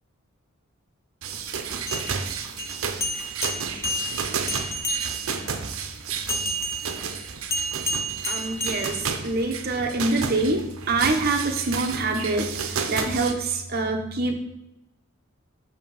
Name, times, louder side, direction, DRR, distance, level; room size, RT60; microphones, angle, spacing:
sound 1, 1.2-13.3, right 6 dB, 90° right, 0.6 m, -32 dB
sound 2, 1.8-5.5 6.3-9.5, equal, 15° left, 0.4 m, -31 dB
voice 1, 8.3-14.4, right 3 dB, 50° right, 3 dB, 0.8 m, -25 dB
7.0 x 2.8 x 5.3 m, 0.87 s
head